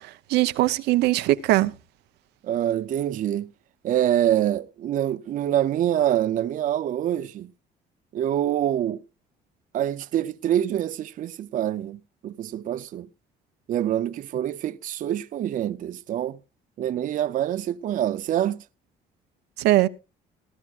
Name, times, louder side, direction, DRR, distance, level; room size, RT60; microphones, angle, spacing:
voice 1, 0.3-1.7 19.6-19.9, right 16 dB, 85° right, 0.8 m, -20 dB
voice 2, 2.4-3.5 3.8-7.5 8.1-9.0 9.7-13.1 13.7-16.4 16.8-18.6, right 11 dB, 50° right, 0.5 m, -25 dB
18.5 x 12.5 x 2.4 m
cardioid pair, 110°, 17 cm